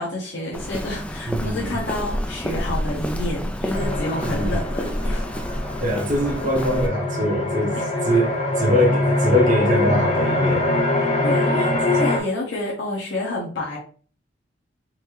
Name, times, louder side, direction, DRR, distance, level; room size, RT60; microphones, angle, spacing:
voice 1, 0.0-5.2 7.7-8.2 11.0-13.8, left 1 dB, 75° left, 1.2 m, -29 dB
Walk footsteps, 0.5-6.9, equal, 5° left, 0.4 m, -28 dB
voice 2, 1.3-1.7 4.2-4.6 5.8-7.8 8.1-10.7, equal, 45° right, 1.0 m, -22 dB
sound 1, 3.7-12.2, left 2 dB, 35° left, 0.8 m, -23 dB
4.3 x 2.9 x 3.2 m
head